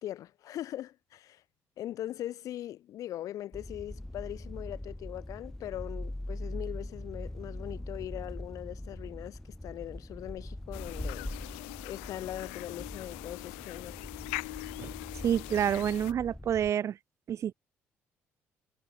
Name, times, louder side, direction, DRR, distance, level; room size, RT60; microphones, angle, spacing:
voice 1, 0.0-1.4 1.8-11.3 11.8-14.0, left 13 dB, 65° left, 2.7 m, -40 dB
sound 1, 3.5-16.7, left 1 dB, 5° left, 0.8 m, -42 dB
sound 2, 10.7-16.1, left 33 dB, 85° left, 0.6 m, -42 dB
voice 2, 15.2-17.0 17.3-17.5, right 9 dB, 50° right, 0.5 m, -28 dB
hypercardioid pair, 55°, 6 cm